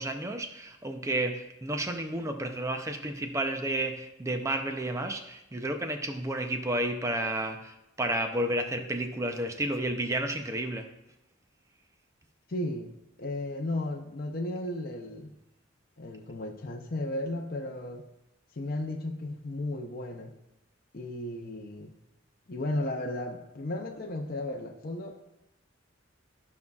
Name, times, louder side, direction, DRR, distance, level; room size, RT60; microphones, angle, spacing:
voice 1, 0.0-10.9, right 1 dB, 15° right, 0.5 m, -31 dB
voice 2, 12.5-12.9 13.2-15.3 16.0-18.1 18.5-20.3 20.9-21.9 22.5-25.1, left 1 dB, 50° left, 0.6 m, -34 dB
14.0 x 5.4 x 2.3 m
head